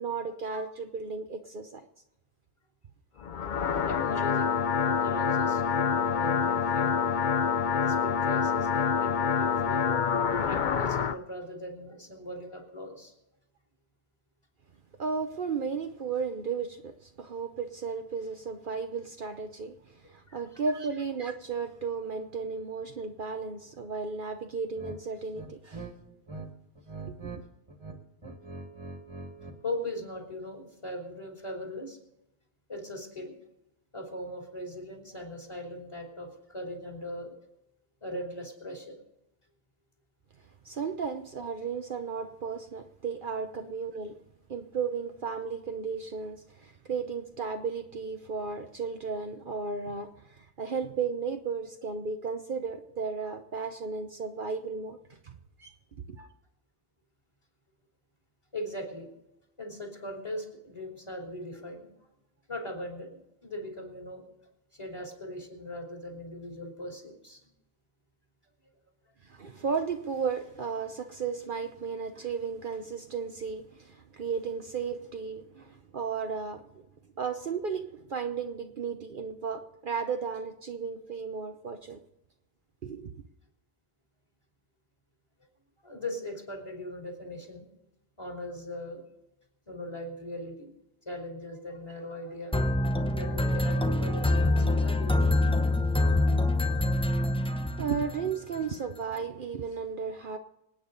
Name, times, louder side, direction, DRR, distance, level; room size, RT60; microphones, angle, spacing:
voice 1, 0.0-1.9 15.0-25.9 27.1-27.4 40.6-44.2 44.5-55.7 56.1-56.3 69.2-76.7 77.2-82.0 82.8-83.2 97.8-100.4, right 5 dB, 55° right, 1.0 m, -34 dB
sound 1, 3.2-11.2, left 6 dB, 50° left, 0.8 m, -27 dB
voice 2, 3.8-7.0 7.7-9.9 10.4-13.1 20.3-20.6 29.6-32.0 32.7-33.3 33.9-37.3 38.0-38.9 43.6-43.7 58.5-59.1 59.6-61.9 62.5-64.2 64.7-67.5 85.8-87.7 88.2-89.0 89.7-90.7 91.0-92.6 92.9-95.3 96.4-96.5, left 1 dB, 25° left, 3.4 m, -40 dB
sound 2, 24.7-25.0 25.3-26.5 26.7-27.4 27.7-29.6, right 3 dB, 25° right, 1.9 m, -42 dB
sound 3, 92.5-98.2, left 2 dB, 5° left, 0.7 m, -25 dB
26.0 x 9.2 x 4.0 m
omnidirectional pair, 1.1 m